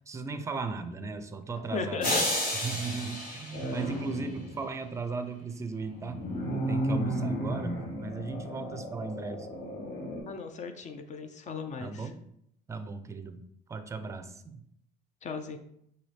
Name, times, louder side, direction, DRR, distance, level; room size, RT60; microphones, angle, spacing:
voice 1, 0.1-2.2 2.6-6.2 6.5-9.5 11.8-12.2 12.7-13.4 13.7-14.6, right 4 dB, 15° right, 8 dB, 0.4 m, -37 dB
voice 2, 1.7-2.2 3.1-3.2 3.6-3.7 10.3-12.1 15.2-15.6, left 5 dB, 45° left, 6 dB, 0.5 m, -37 dB
sound 1, 2.0-4.3, left 1 dB, 60° left, 1.8 m, -31 dB
sound 2, 3.5-4.6 5.8-10.2, right 1 dB, 80° left, 1.4 m, -34 dB
5.7 x 2.7 x 3.3 m, 0.72 s
cardioid pair, 110°, 17 cm